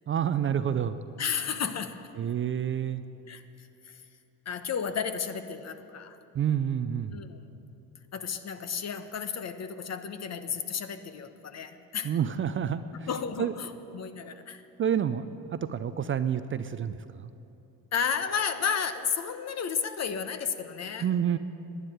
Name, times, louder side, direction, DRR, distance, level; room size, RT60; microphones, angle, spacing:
voice 1, 0.1-1.0 2.2-3.0 6.3-7.1 12.0-13.1 13.4-13.5 14.8-17.3 21.0-21.4, right 9 dB, 30° right, 12 dB, 0.5 m, -28 dB
voice 2, 1.2-2.0 3.3-4.0 4.4-6.2 7.1-7.4 8.1-12.2 13.1-14.7 17.9-21.1, left 7 dB, 40° left, 10 dB, 1.0 m, -33 dB
11.5 x 9.8 x 9.2 m, 2.8 s
supercardioid pair, 80°, 39 cm